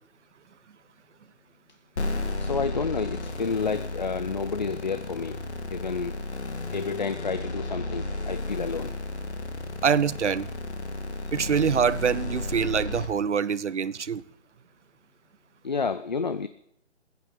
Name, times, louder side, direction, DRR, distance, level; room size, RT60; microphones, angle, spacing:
sound 1, 2.0-13.1, left 2 dB, 65° left, 2.8 m, -33 dB
voice 1, 2.4-5.4 5.7-6.1 6.7-8.9 15.6-16.5, left 5 dB, 40° left, 0.5 m, -30 dB
voice 2, 9.8-10.5 11.3-14.2, right 7 dB, 75° right, 0.9 m, -25 dB
15.0 x 9.4 x 8.5 m
hypercardioid pair, 165°, 35 cm